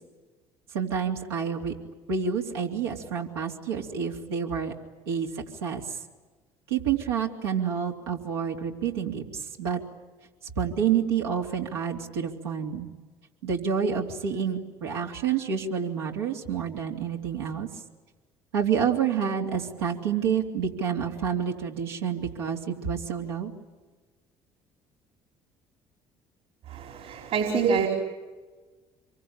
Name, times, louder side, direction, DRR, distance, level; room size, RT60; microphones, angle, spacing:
voice 1, 0.7-1.7 2.1-4.7 5.1-6.0 6.7-9.8 10.5-12.9 13.4-17.7 18.5-23.5, right 7 dB, 85° right, -1 dB, 3.4 m, -28 dB
voice 2, 26.7-27.9, right 6 dB, 60° right, 3 dB, 4.7 m, -26 dB
27.0 x 23.5 x 9.0 m, 1.3 s
hypercardioid pair, 60°, 13 cm